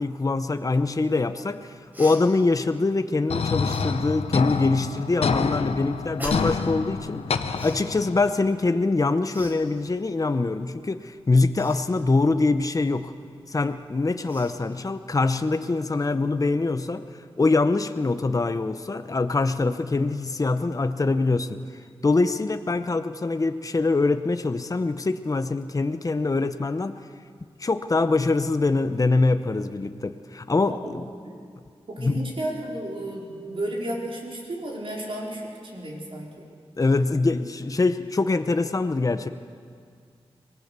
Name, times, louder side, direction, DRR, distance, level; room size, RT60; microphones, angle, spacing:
voice 1, 0.0-13.1 13.5-17.0 17.4-21.6 22.0-26.9 27.6-31.0 32.0-32.3 36.8-39.3, left 3 dB, 35° left, 9 dB, 0.8 m, -24 dB
Cough, 1.9-2.2 3.6-3.9 6.2-6.6 7.5-7.8 9.3-9.6 11.5-11.8 13.7-13.8 14.2-14.5, equal, 15° right, 3.9 m, -38 dB
sound 1, 3.3-8.3, left 5 dB, 85° left, 0.8 m, -27 dB
voice 2, 30.7-31.4 31.9-36.5, right 1 dB, 60° right, -2 dB, 4.6 m, -33 dB
24.5 x 18.5 x 6.8 m, 2.1 s
wide cardioid pair, 80°, 10 cm